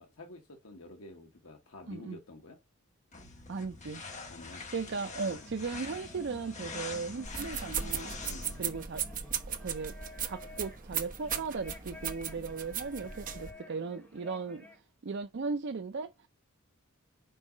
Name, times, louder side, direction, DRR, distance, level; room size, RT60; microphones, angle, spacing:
voice 1, 0.0-2.6 4.3-4.6 5.2-5.5 8.2-8.5, left 2 dB, 70° left, 1.3 m, -50 dB
voice 2, 1.9-2.2 3.5-4.0 4.7-8.2 8.6-9.0 9.5-10.0 10.2-14.7 15.0-16.3, right 4 dB, 55° right, 0.5 m, -37 dB
sound 1, 3.1-8.7, left 4 dB, 35° left, 1.5 m, -44 dB
sound 2, 5.0-14.8, left 1 dB, 10° left, 2.4 m, -52 dB
sound 3, 7.2-13.5, right 8 dB, 40° right, 1.1 m, -37 dB
5.5 x 4.8 x 5.0 m
head